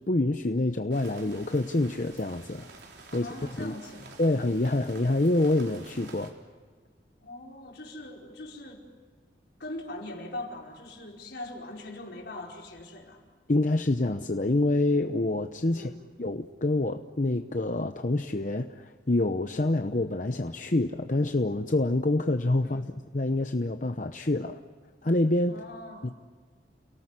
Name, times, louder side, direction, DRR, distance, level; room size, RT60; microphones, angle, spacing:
voice 1, 0.1-2.7 3.1-3.3 3.6-3.7 4.2-6.3 13.5-15.9 16.2-22.8 23.1-24.6 25.0-25.6 26.0-26.1, left 2 dB, 45° left, 7 dB, 0.9 m, -26 dB
sound 1, 0.9-6.3, right 3 dB, 70° right, 4.0 m, -49 dB
voice 2, 3.1-4.2 7.2-8.9 9.6-13.2 15.7-16.2 22.6-23.0 25.5-26.1, left 1 dB, 70° left, 0 dB, 4.9 m, -41 dB
30.0 x 18.5 x 9.9 m, 1.5 s
head